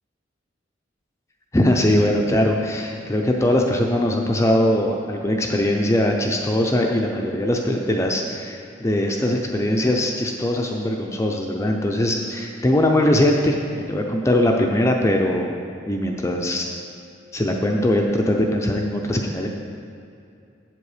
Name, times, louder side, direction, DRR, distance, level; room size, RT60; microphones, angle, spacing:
voice 1, 1.5-15.6 15.9-16.7 17.3-19.5, left 1 dB, 15° left, 1 dB, 0.5 m, -21 dB
8.0 x 7.6 x 4.9 m, 2.5 s
head